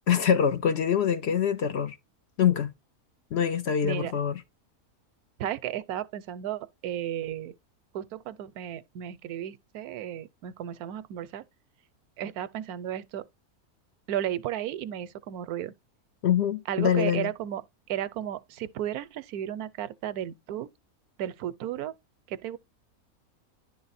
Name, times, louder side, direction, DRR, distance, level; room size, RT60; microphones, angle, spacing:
voice 1, 0.1-2.0 2.4-2.7 3.3-4.3 16.2-17.3, left 8 dB, 60° left, 0.7 m, -24 dB
voice 2, 3.8-4.1 5.4-7.6 7.9-11.4 12.2-13.3 14.1-15.7 16.7-17.6 17.9-20.7 21.2-21.9 22.3-22.6, right 11 dB, 85° right, 1.1 m, -34 dB
10.5 x 3.9 x 4.1 m
omnidirectional pair, 1.6 m